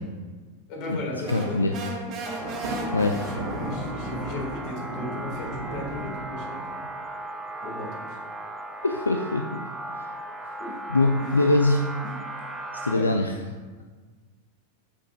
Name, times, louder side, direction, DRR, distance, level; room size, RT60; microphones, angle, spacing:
voice 1, 0.7-1.6 2.7-6.6 7.6-8.2 10.4-10.8 11.2-11.5 12.0-12.1 12.9-13.1, left 1 dB, 40° left, -2 dB, 1.8 m, -36 dB
sound 1, 1.2-3.9, right 3 dB, 35° right, 1.0 m, -36 dB
voice 2, 1.3-1.7 2.9-3.2 8.8-9.6 10.9-11.8 12.8-13.3, left 2 dB, 80° left, 3 dB, 0.3 m, -22 dB
sound 2, 2.2-13.0, right 1 dB, 5° right, 0.6 m, -37 dB
Thunder, 2.4-7.0, right 1 dB, 55° right, 1.1 m, -36 dB
8.4 x 5.1 x 2.3 m, 1.4 s
figure-of-eight pair, 90°, 0 cm